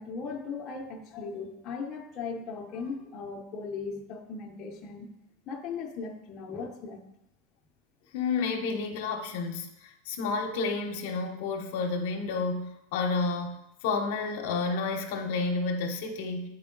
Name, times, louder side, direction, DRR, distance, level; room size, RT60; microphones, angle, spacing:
voice 1, 0.0-5.1 5.5-7.0, left 5 dB, 35° left, 0 dB, 0.8 m, -38 dB
voice 2, 8.1-16.5, left 4 dB, 70° left, 3 dB, 0.9 m, -30 dB
8.1 x 4.5 x 3.9 m, 0.85 s
supercardioid pair, 135°, 0 cm